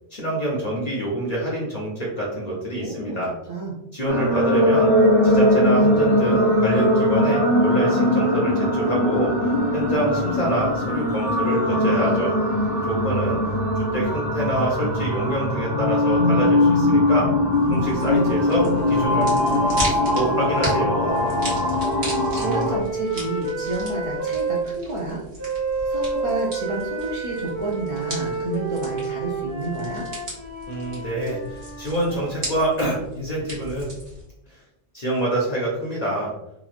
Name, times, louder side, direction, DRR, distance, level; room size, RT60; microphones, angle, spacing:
voice 1, 0.1-3.3 3.9-4.9 5.2-12.4 12.8-13.4 13.8-17.3 17.7-19.3 20.1-21.2 30.7-33.9 34.5-34.6 34.9-36.3, right 1 dB, 45° left, -4 dB, 0.7 m, -26 dB
voice 2, 2.8-3.2 3.5-3.8 19.2-20.0 22.3-25.2 25.8-30.0, right 2 dB, 45° right, -3 dB, 0.4 m, -30 dB
sound 1, 4.1-22.8, left 1 dB, ahead, 0.7 m, -21 dB
sound 2, 17.5-34.3, equal, 70° right, 1.3 m, -37 dB
sound 3, 17.7-24.7 25.4-32.6, right 3 dB, 85° right, 1.4 m, -31 dB
3.0 x 2.3 x 2.4 m, 0.86 s
omnidirectional pair, 1.1 m